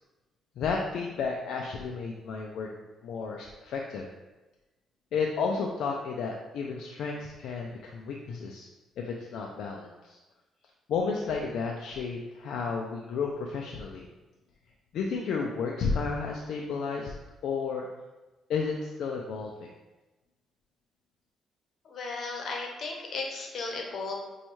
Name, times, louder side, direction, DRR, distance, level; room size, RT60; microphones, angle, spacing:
voice 1, 0.6-2.7 3.0-4.1 5.1-8.7 9.0-10.2 10.9-14.0 14.9-17.1 17.4-17.9 18.5-19.7, left 5 dB, 75° left, 0 dB, 0.4 m, -32 dB
voice 2, 21.8-24.2, left 3 dB, 60° left, 1 dB, 0.8 m, -35 dB
5.2 x 2.3 x 3.0 m, 1.1 s
cardioid pair, 90°, 0 cm